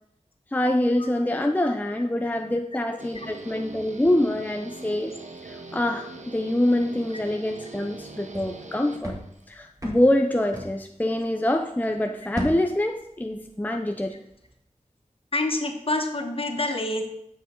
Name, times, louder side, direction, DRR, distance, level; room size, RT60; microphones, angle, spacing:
voice 1, 0.5-5.1 5.5-9.2 9.5-14.2, left 1 dB, 10° left, 4 dB, 0.6 m, -25 dB
Guitar, 3.0-9.5, right 2 dB, 60° right, 1.0 m, -42 dB
sound 1, 7.9-11.6 12.0-14.0 14.2-14.5, right 1 dB, 25° right, 2.0 m, -38 dB
voice 2, 15.3-17.1, left 2 dB, 45° left, 5 dB, 1.2 m, -27 dB
9.0 x 6.3 x 3.8 m, 0.76 s
wide cardioid pair, 50°, 14 cm